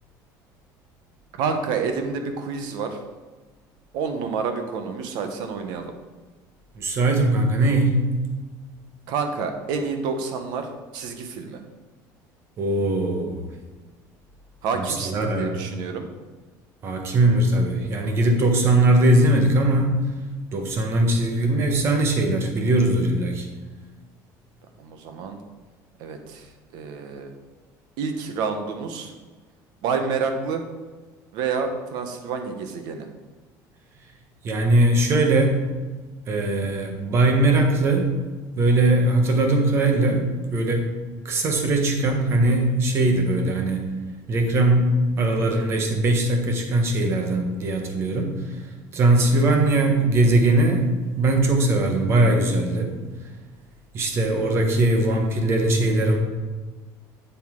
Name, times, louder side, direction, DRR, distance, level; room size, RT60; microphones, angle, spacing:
voice 1, 1.4-3.0 3.9-5.9 9.1-11.6 14.6-16.1 24.8-25.4 26.0-27.3 28.0-29.1 29.8-30.6 31.3-33.1 49.2-49.4, right 5 dB, 65° right, 6 dB, 1.2 m, -28 dB
voice 2, 6.7-8.0 12.6-13.4 14.8-15.6 16.8-19.9 20.5-23.5 34.4-35.6 36.3-38.1 38.6-40.2 40.5-40.9 41.2-43.8 44.3-48.6 48.9-50.9 51.2-53.0 53.9-56.2, right 2 dB, 35° right, 3 dB, 1.4 m, -20 dB
8.3 x 7.6 x 3.8 m, 1.3 s
cardioid pair, 170°, 8 cm